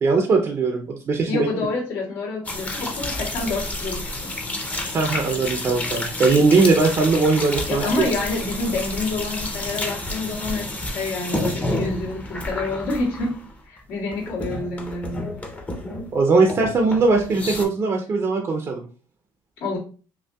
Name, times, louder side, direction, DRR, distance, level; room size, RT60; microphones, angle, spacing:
voice 1, 0.0-1.5 4.9-8.1 16.1-18.8, right 4 dB, 30° right, 3 dB, 0.5 m, -20 dB
voice 2, 1.3-4.3 7.7-13.3 13.6-15.3 19.6-19.8, left 3 dB, 85° left, -5 dB, 1.8 m, -28 dB
sound 1, 2.4-13.8 14.1-16.2 16.5-17.6, left 1 dB, 15° left, 0.6 m, -30 dB
5.3 x 2.1 x 2.2 m, 0.38 s
cardioid pair, 135°, 9 cm